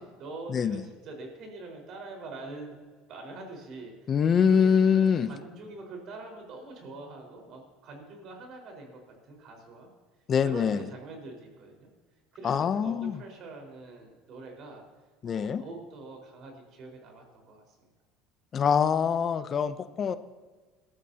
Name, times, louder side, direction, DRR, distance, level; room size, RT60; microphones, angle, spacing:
voice 1, 0.0-2.7 3.1-4.2 4.5-9.9 10.4-11.9 12.3-14.8 15.2-17.9, right 2 dB, 55° right, 2 dB, 4.5 m, -44 dB
voice 2, 4.1-5.3 10.3-10.8 12.4-13.2 15.2-15.6 18.5-20.2, left 7 dB, 40° left, 13 dB, 0.6 m, -24 dB
20.0 x 12.5 x 2.8 m, 1.4 s
supercardioid pair, 110°, 0 cm